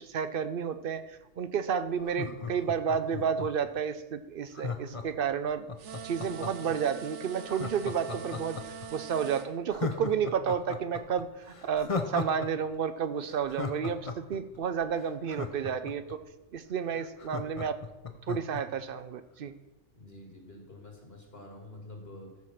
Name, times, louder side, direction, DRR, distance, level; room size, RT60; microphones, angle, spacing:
voice 1, 0.0-5.6 6.0-16.2 16.5-17.8 18.3-19.5, right 7 dB, 55° right, 13 dB, 0.7 m, -31 dB
Laughter, 2.0-3.7 4.5-6.7 7.5-8.9 9.2-9.3 9.7-12.5 12.7-12.8 13.2-16.1 16.6-16.7 16.9-18.6 19.0-19.1, left 4 dB, 35° left, 0.7 m, -36 dB
sound 1, 5.8-9.5, right 7 dB, 75° right, 1.0 m, -43 dB
voice 2, 19.9-22.4, left 1 dB, 55° left, 2 dB, 2.1 m, -48 dB
14.0 x 4.8 x 5.8 m, 1.0 s
omnidirectional pair, 1.3 m